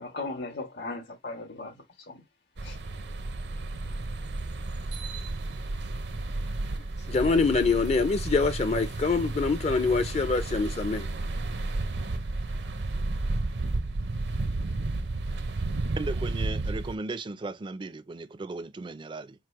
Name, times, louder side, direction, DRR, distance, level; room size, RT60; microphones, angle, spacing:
voice 1, 0.0-2.2 2.6-2.8, left 3 dB, 80° left, 1.9 m, -37 dB
sound 1, 2.6-17.0, right 2 dB, 70° right, 0.7 m, -32 dB
voice 2, 7.1-11.1, left 4 dB, 40° left, 0.5 m, -25 dB
voice 3, 16.0-19.3, right 3 dB, 30° right, 0.4 m, -36 dB
4.7 x 2.0 x 4.6 m
head